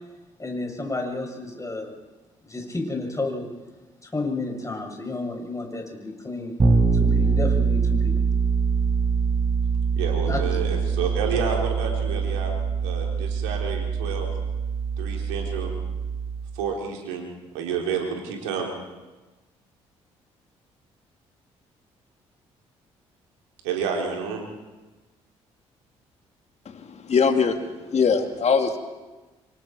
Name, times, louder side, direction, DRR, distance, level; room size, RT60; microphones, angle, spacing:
voice 1, 0.4-1.9 2.4-3.5 4.0-6.5 6.9-8.1 10.2-10.6, left 2 dB, 20° left, 1 dB, 7.3 m, -31 dB
Bass guitar, 6.6-16.4, right 5 dB, 35° right, 6.4 m, -24 dB
voice 2, 10.0-12.5 12.8-14.3 15.0-15.7 16.5-17.3 17.5-18.7 23.6-24.4, right 6 dB, 85° right, 0 dB, 3.8 m, -29 dB
voice 3, 27.1-27.6 27.9-28.8, left 5 dB, 45° left, 6 dB, 2.5 m, -20 dB
27.5 x 25.0 x 4.6 m, 1.2 s
hypercardioid pair, 45°, 15 cm